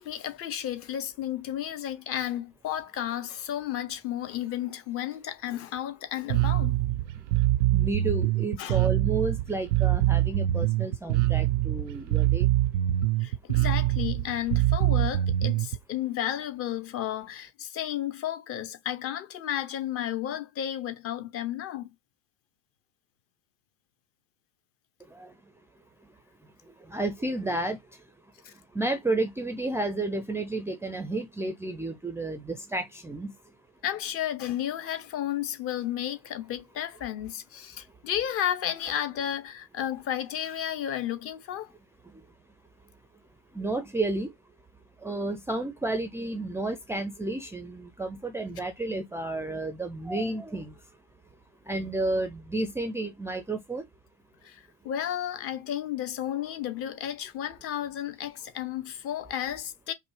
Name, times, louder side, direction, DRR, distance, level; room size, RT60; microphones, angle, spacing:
voice 1, 0.0-6.8 8.6-8.8 13.2-21.9 28.4-28.5 33.8-41.7 48.6-48.7 54.4-59.9, left 11 dB, 35° left, 0.7 m, -33 dB
Bass guitar, 6.3-15.8, right 14 dB, 65° right, 0.5 m, -24 dB
voice 2, 7.7-12.5 25.1-25.3 26.9-27.8 28.7-33.3 43.5-44.3 45.0-50.7 51.7-53.8, right 2 dB, 5° right, 0.4 m, -31 dB
5.1 x 2.0 x 3.0 m
figure-of-eight pair, 75°, 39 cm